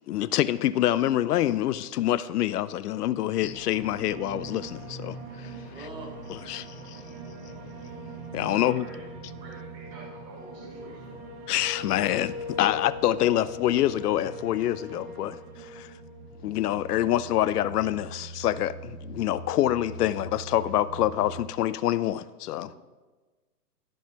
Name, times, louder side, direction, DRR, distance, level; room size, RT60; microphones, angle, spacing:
voice 1, 0.1-5.5 6.5-7.0 8.3-8.9 11.5-15.9 16.4-22.7, left 13 dB, 70° left, 0.5 m, -26 dB
sound 1, 3.3-21.4, equal, 40° right, 1.6 m, -41 dB
voice 2, 5.7-6.3 22.7-22.8, right 2 dB, 10° right, 1.1 m, -43 dB
voice 3, 8.5-9.0 9.4-11.2, right 2 dB, 75° right, 3.0 m, -49 dB
14.5 x 5.4 x 2.9 m
hypercardioid pair, 150°, 50 cm